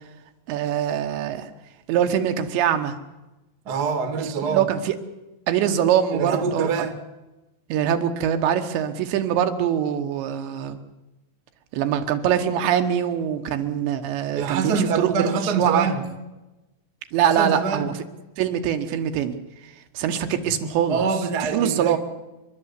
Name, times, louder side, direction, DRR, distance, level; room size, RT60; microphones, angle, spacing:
voice 1, 0.5-1.5 1.9-2.9 4.2-5.0 5.5-6.9 7.7-10.8 11.7-15.9 17.1-17.9 18.4-19.3 19.6-21.1 21.4-22.0, right 9 dB, 80° right, 7 dB, 3.5 m, -23 dB
voice 2, 3.6-4.6 6.1-6.9 14.3-16.0 17.3-17.9 20.9-22.0, right 5 dB, 40° right, 7 dB, 1.3 m, -25 dB
29.5 x 12.0 x 8.3 m, 1.1 s
omnidirectional pair, 5.1 m